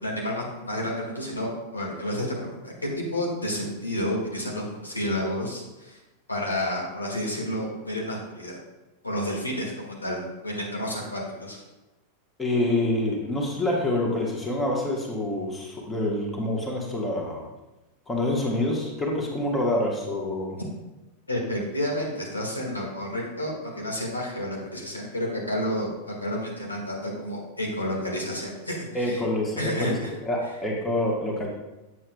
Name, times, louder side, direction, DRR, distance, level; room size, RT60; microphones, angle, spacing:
voice 1, 0.0-6.0 6.3-8.6 9.0-11.6 21.3-29.2 29.6-30.1, left 1 dB, 80° left, -3 dB, 1.8 m, -30 dB
voice 2, 12.4-17.4 18.1-20.6 28.9-31.5, left 1 dB, 15° left, -1 dB, 1.4 m, -27 dB
8.3 x 7.3 x 2.3 m, 1.0 s
figure-of-eight pair, 90°, 0 cm